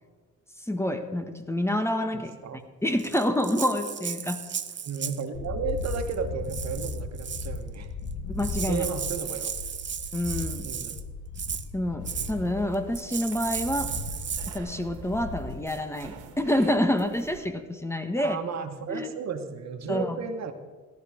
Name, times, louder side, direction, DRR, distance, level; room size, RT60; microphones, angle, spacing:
voice 1, 0.7-2.3 2.8-4.4 8.3-8.9 10.1-10.7 11.7-13.9 14.5-18.4 18.9-19.1 19.9-20.2, left 1 dB, 10° left, 8 dB, 1.4 m, -27 dB
voice 2, 2.1-2.6 4.8-7.9 8.7-9.5 10.6-11.1 18.2-20.5, right 6 dB, 60° right, 7 dB, 1.6 m, -34 dB
Rattle (instrument), 3.0-5.3 5.8-6.2 6.5-7.6 8.1-8.2 8.4-11.0 11.4-11.7 12.1-12.3 12.9-14.6, right 8 dB, 40° right, 0.9 m, -35 dB
sound 1, 5.3-15.6, left 4 dB, 80° left, 1.7 m, -37 dB
sound 2, 12.0-17.5, right 5 dB, 90° right, 1.6 m, -46 dB
18.0 x 12.0 x 5.0 m, 1.4 s
cardioid pair, 90°, 30 cm